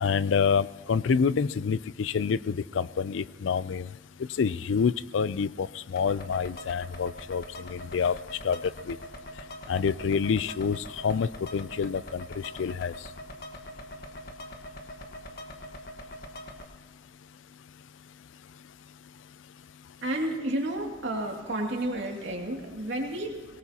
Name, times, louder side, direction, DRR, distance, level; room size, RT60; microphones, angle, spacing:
voice 1, 0.0-3.9 4.4-5.7 5.9-7.4 7.7-8.2 8.4-8.6 8.9-9.0 9.7-12.2 12.6-12.9, left 6 dB, 90° left, 18 dB, 0.4 m, -27 dB
sound 1, 6.0-16.6, equal, 55° left, 1.4 m, -43 dB
voice 2, 20.0-23.5, right 1 dB, 80° right, 0 dB, 2.4 m, -31 dB
22.5 x 18.5 x 2.9 m, 1.3 s
head